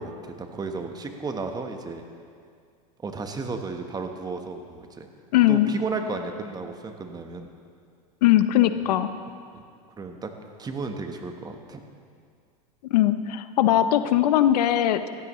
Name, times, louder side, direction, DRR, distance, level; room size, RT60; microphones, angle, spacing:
voice 1, 0.0-2.0 3.0-5.1 5.5-7.5 8.8-8.9 9.5-9.6 10.0-10.3 10.6-11.8, right 4 dB, 20° right, 5 dB, 1.1 m, -33 dB
voice 2, 5.3-5.7 8.2-9.1 12.9-15.0, left 12 dB, 75° left, 11 dB, 0.7 m, -20 dB
16.5 x 14.0 x 3.1 m, 2.2 s
hypercardioid pair, 110°, 20 cm